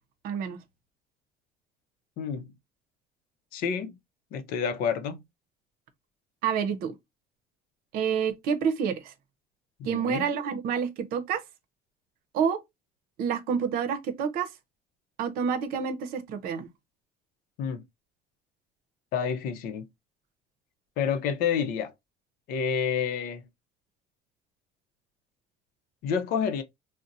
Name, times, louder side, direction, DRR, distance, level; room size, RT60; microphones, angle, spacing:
voice 1, 0.2-0.6 6.4-6.9 7.9-9.1 9.8-11.4 12.3-12.6 13.2-14.5 15.2-16.7, right 7 dB, 70° right, 0.7 m, -28 dB
voice 2, 2.2-2.5 3.5-4.0 4.3-5.2 9.8-10.3 17.6-17.8 19.1-19.9 21.0-21.9 22.5-23.4 26.0-26.6, left 7 dB, 65° left, 0.6 m, -29 dB
2.5 x 2.1 x 3.9 m
cardioid pair, 150°, 16 cm